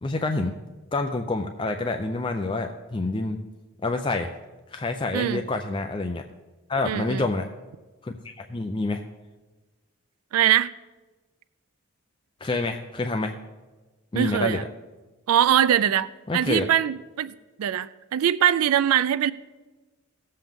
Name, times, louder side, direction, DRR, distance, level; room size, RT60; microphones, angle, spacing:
voice 1, 0.0-0.5 0.9-3.4 3.8-4.3 4.7-6.2 6.7-7.5 8.0-9.0 12.4-13.3 14.1-14.6 16.3-16.7, left 2 dB, 25° left, 0.4 m, -27 dB
voice 2, 6.8-7.2 10.3-10.7 14.1-14.6 15.3-19.3, right 10 dB, 85° right, 0.3 m, -22 dB
17.0 x 7.7 x 3.6 m
head